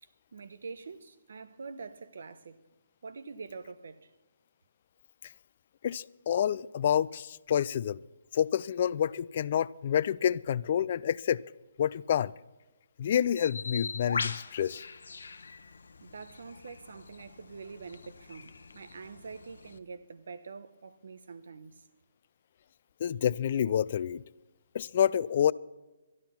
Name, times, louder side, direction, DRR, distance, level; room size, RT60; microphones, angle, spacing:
voice 1, 0.0-2.6 3.0-4.1 16.0-21.8, right 4 dB, 75° right, 0.9 m, -45 dB
voice 2, 5.8-8.0 8.3-11.4 11.8-12.3 13.0-14.8 23.0-24.2 24.7-25.5, left 9 dB, 50° left, 0.3 m, -28 dB
Bird, 13.4-19.8, left 4 dB, 85° left, 0.8 m, -41 dB
12.0 x 11.0 x 5.8 m
hypercardioid pair, 150°, 0 cm